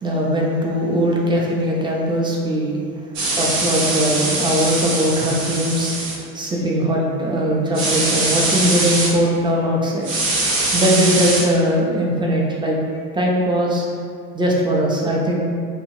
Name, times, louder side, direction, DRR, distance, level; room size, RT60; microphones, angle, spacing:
voice 1, 0.0-2.8 3.4-5.9 6.3-10.0 10.7-12.8 13.1-13.9 14.3-15.4, equal, 10° right, -3 dB, 0.5 m, -20 dB
sound 1, 3.2-6.2 7.7-9.1 10.0-11.4, right 2 dB, 70° right, 0.8 m, -22 dB
2.6 x 2.5 x 3.0 m, 2.2 s
hypercardioid pair, 65°, 43 cm